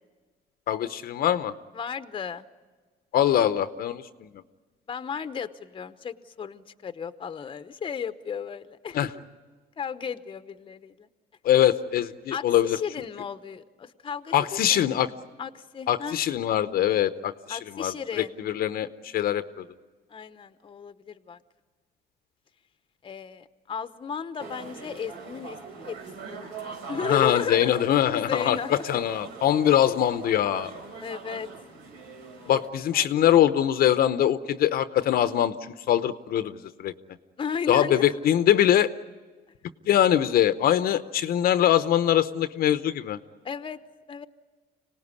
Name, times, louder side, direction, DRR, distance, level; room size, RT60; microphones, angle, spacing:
voice 1, 0.7-1.5 3.1-4.3 8.9-9.1 11.4-12.8 14.3-15.1 15.9-19.7 27.0-30.7 32.5-36.9 37.7-38.9 39.9-43.2, left 11 dB, 60° left, 12 dB, 0.8 m, -23 dB
voice 2, 1.7-2.5 4.9-9.0 9.8-11.1 12.3-14.8 15.4-16.2 17.5-18.4 20.1-21.4 23.0-25.6 25.9-26.0 26.3-26.4 26.9-27.7 28.1-28.8 31.0-31.5 32.4-32.6 32.9-33.1 37.4-38.1 43.4-43.8 44.1-44.3, left 6 dB, 30° left, 11 dB, 0.9 m, -34 dB
sound 1, 24.4-32.7, right 5 dB, 85° right, 3.6 m, -42 dB
26.0 x 18.0 x 9.7 m, 1.4 s
cardioid pair, 110°, 17 cm